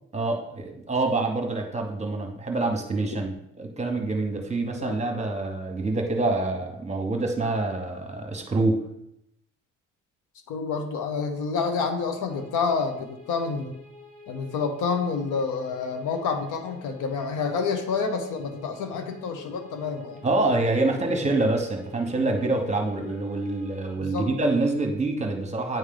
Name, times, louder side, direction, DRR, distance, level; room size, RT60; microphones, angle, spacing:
voice 1, 0.1-8.8 20.2-25.8, right 2 dB, 20° right, 3 dB, 1.1 m, -26 dB
voice 2, 10.5-13.7 14.3-20.2 20.9-21.0 24.0-24.3, left 5 dB, 90° left, 5 dB, 0.9 m, -28 dB
sound 1, 12.3-24.0, left 3 dB, 50° left, 2.2 m, -49 dB
9.2 x 3.2 x 3.8 m, 0.81 s
cardioid pair, 90°, 30 cm